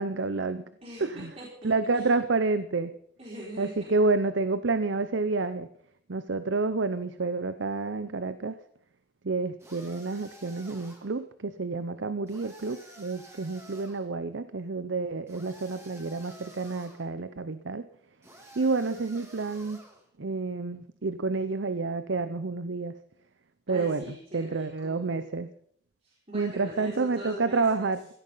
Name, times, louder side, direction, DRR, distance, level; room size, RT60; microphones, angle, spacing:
voice 1, 0.0-0.6 1.0-1.3 1.6-2.9 3.6-5.7 6.1-8.6 9.2-17.8 18.6-19.8 20.2-23.0 23.7-25.5 26.3-28.2, right 3 dB, 90° right, 12 dB, 0.7 m, -29 dB
voice 2, 0.8-2.1 3.2-4.0 23.7-25.1 26.0-27.9, right 1 dB, 35° right, -6 dB, 4.8 m, -42 dB
sound 1, 9.6-11.2 12.3-14.1 15.3-17.1 18.2-20.0, right 1 dB, 15° right, 2.9 m, -51 dB
16.0 x 13.5 x 5.7 m, 0.66 s
head